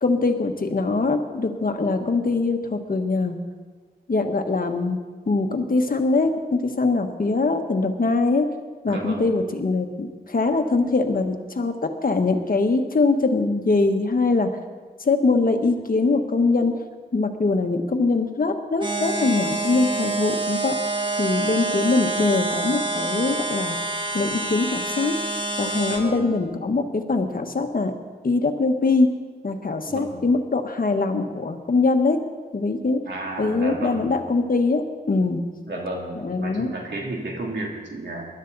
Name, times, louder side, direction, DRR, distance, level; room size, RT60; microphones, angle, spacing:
voice 1, 0.0-3.4 4.1-5.0 5.3-8.5 8.8-14.5 15.0-16.8 17.1-20.7 21.2-23.7 24.1-25.2 25.6-27.9 28.2-29.1 29.4-32.2 32.5-33.0 33.4-35.4 36.1-36.7, left 3 dB, 55° left, 5 dB, 1.3 m, -22 dB
voice 2, 8.9-9.3 25.9-26.3 29.9-30.2 33.1-34.2 35.7-38.3, right 2 dB, 80° right, -1 dB, 2.8 m, -32 dB
sound 1, 18.8-26.0, right 2 dB, 25° right, 2.3 m, -27 dB
20.5 x 12.0 x 4.0 m, 1.5 s
wide cardioid pair, 65°, 18 cm